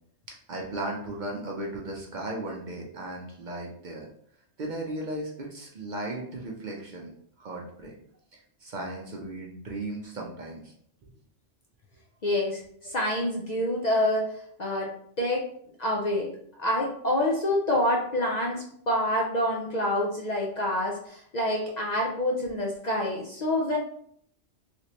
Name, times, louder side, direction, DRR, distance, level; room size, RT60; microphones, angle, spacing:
voice 1, 0.5-4.1 4.6-7.1 7.4-8.0 8.3-10.7, right 1 dB, 50° right, -1 dB, 0.6 m, -36 dB
voice 2, 12.2-15.4 15.8-16.3 16.6-23.8, left 1 dB, 50° left, -2 dB, 0.5 m, -27 dB
3.3 x 3.0 x 2.8 m, 0.66 s
omnidirectional pair, 1.2 m